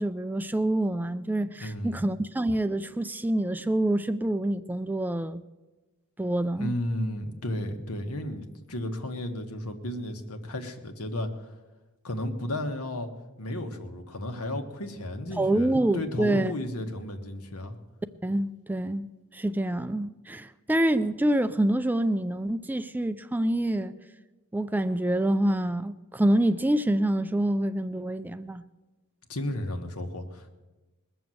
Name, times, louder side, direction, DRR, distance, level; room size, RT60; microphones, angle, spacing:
voice 1, 0.0-5.4 6.2-6.7 15.3-16.5 18.2-23.9 24.5-28.6, right 1 dB, 10° right, 0.4 m, -26 dB
voice 2, 1.6-2.0 6.5-11.5 12.0-13.1 13.4-17.7 29.3-30.5, left 1 dB, 85° left, 1.5 m, -33 dB
20.5 x 7.0 x 7.7 m
head